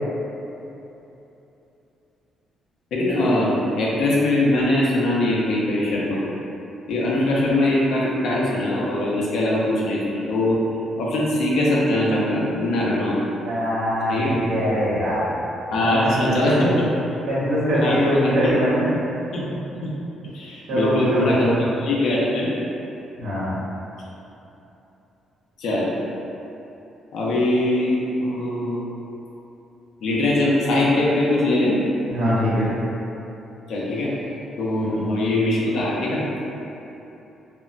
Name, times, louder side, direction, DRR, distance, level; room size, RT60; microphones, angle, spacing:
voice 1, 2.9-6.2 6.9-10.6 11.0-13.2 14.1-14.3 15.7-16.9 17.7-18.5 19.3-19.5 19.8-19.9 20.2-22.5 25.6-25.9 27.1-28.8 30.0-31.8 33.7-34.1 34.6-36.2, left 1 dB, 75° left, -5 dB, 0.6 m, -22 dB
voice 2, 13.4-15.2 15.8-16.7 17.3-18.9 20.7-21.5 23.2-23.5 32.1-32.7 34.8-35.1, equal, 90° right, -10 dB, 0.7 m, -22 dB
2.1 x 2.1 x 3.7 m, 3.0 s
cardioid pair, 90°, 0 cm